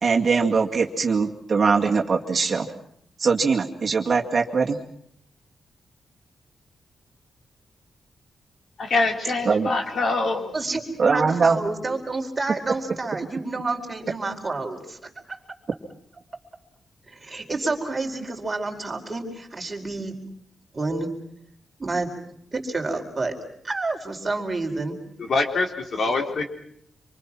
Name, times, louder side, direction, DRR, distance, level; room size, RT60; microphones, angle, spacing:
voice 1, 0.0-2.7 3.2-4.8 9.5-9.7 11.0-11.6, right 5 dB, 40° right, 1 dB, 2.2 m, -21 dB
voice 2, 8.8-10.5 25.3-26.5, left 3 dB, 55° left, 3 dB, 4.0 m, -24 dB
voice 3, 10.5-15.1 17.1-20.1 20.7-21.1 21.8-22.1 22.5-23.3 23.6-25.0, right 3 dB, 20° right, 2 dB, 4.7 m, -29 dB
27.0 x 25.0 x 6.1 m, 0.68 s
wide cardioid pair, 130°, 0 cm